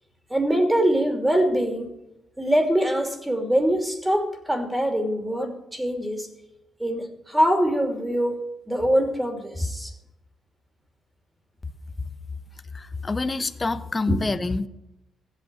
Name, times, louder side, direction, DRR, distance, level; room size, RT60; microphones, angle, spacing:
voice 1, 0.3-1.9 2.4-6.3 6.8-8.4 8.7-9.9 14.1-14.2, equal, 10° right, 5 dB, 2.8 m, -23 dB
voice 2, 12.7-14.7, left 3 dB, 25° left, 11 dB, 1.0 m, -27 dB
15.5 x 8.5 x 9.0 m, 0.88 s
cardioid pair, 90°, 0 cm